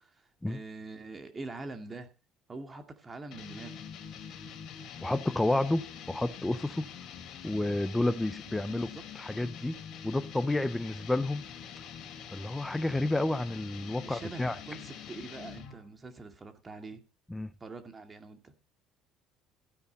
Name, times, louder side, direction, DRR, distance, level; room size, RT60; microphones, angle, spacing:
voice 1, 0.0-2.1 2.5-3.7 8.7-9.0 14.0-17.0 17.6-18.5, right 3 dB, 20° right, 2.3 m, -44 dB
sound 1, 3.3-15.8, left 7 dB, 55° left, 3.6 m, -45 dB
voice 2, 5.0-6.9 7.4-8.9 9.2-9.8 10.0-11.4 12.3-14.6 17.3-17.5, left 2 dB, 10° left, 0.6 m, -30 dB
15.0 x 9.8 x 4.1 m
cardioid pair, 140°, 0 cm